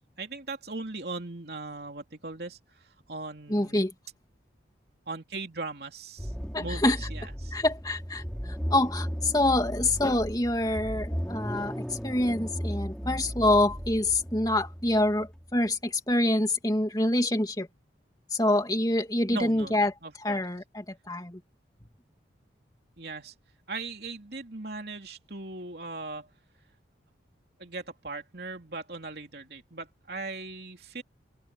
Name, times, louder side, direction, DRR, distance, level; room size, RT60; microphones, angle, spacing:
voice 1, 0.2-2.6 3.1-3.9 5.1-6.3 6.6-7.6 19.3-20.4 23.0-23.3 23.7-26.3 27.6-31.0, right 3 dB, 55° right, 3.3 m, -39 dB
voice 2, 3.5-3.9 6.5-7.0 7.5-17.7 18.3-19.9 20.2-21.4, left 1 dB, 20° left, 2.7 m, -26 dB
sound 1, 6.2-15.6, equal, 5° left, 5.7 m, -36 dB
head